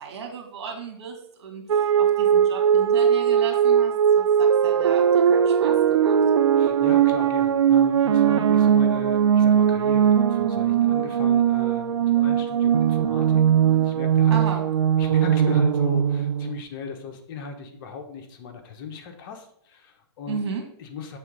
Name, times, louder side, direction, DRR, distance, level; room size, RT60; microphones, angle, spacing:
voice 1, 0.0-6.1 14.3-14.6 20.3-20.6, right 6 dB, 65° right, 1 dB, 2.1 m, -35 dB
sound 1, 1.7-16.6, right 8 dB, 90° right, 0.4 m, -20 dB
voice 2, 6.6-14.4 15.0-20.4 20.8-21.2, left 5 dB, 45° left, 4 dB, 1.1 m, -38 dB
6.8 x 3.6 x 5.3 m, 0.68 s
hypercardioid pair, 140°, 15 cm